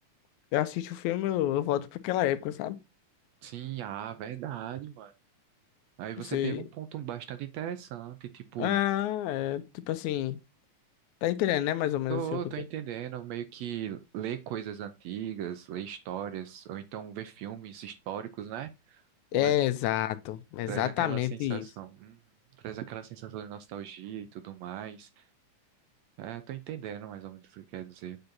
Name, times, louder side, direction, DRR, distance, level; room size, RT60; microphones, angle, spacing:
voice 1, 0.5-2.8 6.3-6.6 8.6-10.4 11.2-12.4 19.3-21.6, left 13 dB, 80° left, 2.0 m, -29 dB
voice 2, 3.4-5.1 6.0-8.8 12.1-19.0 19.3-19.5 20.7-22.2 22.6-25.2 26.2-28.2, right 10 dB, 80° right, 1.7 m, -38 dB
8.0 x 6.6 x 2.7 m
omnidirectional pair, 3.5 m